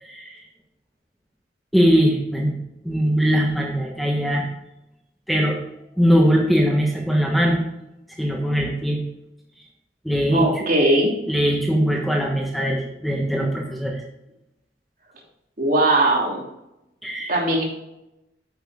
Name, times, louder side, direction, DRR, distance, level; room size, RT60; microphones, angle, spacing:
voice 1, 0.0-0.4 1.7-2.6 2.8-4.5 5.3-5.6 6.0-7.6 8.2-9.0 10.0-10.6 11.3-14.0 17.0-17.3, equal, ahead, -2 dB, 1.3 m, -21 dB
voice 2, 10.3-11.1 15.6-16.4 17.3-17.6, right 1 dB, 50° right, -2 dB, 3.0 m, -19 dB
9.4 x 8.0 x 3.6 m, 0.87 s
head